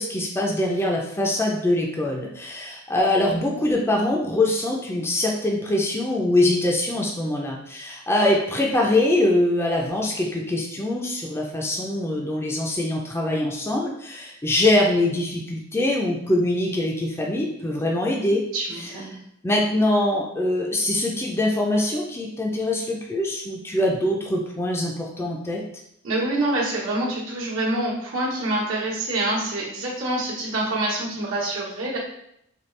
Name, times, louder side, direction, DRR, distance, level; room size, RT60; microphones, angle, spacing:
voice 1, 0.0-18.4 18.8-18.9 19.4-25.6, left 1 dB, 10° left, -1 dB, 0.4 m, -23 dB
voice 2, 18.5-19.1 26.0-32.0, right 2 dB, 75° right, -6 dB, 1.1 m, -26 dB
4.2 x 2.3 x 3.2 m, 0.72 s
head